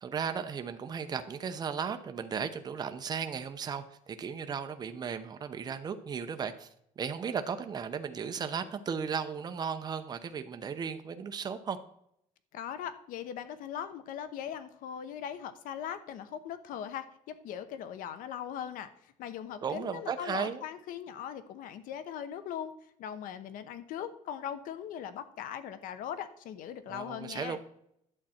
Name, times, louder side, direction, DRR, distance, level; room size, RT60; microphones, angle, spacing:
voice 1, 0.0-6.7 7.0-11.8 19.6-20.6 26.9-27.6, right 6 dB, 30° right, 8 dB, 0.8 m, -35 dB
voice 2, 12.5-22.7 23.0-27.6, left 9 dB, 70° left, 13 dB, 0.9 m, -40 dB
11.0 x 7.6 x 4.4 m, 0.74 s
cardioid pair, 145°, 15 cm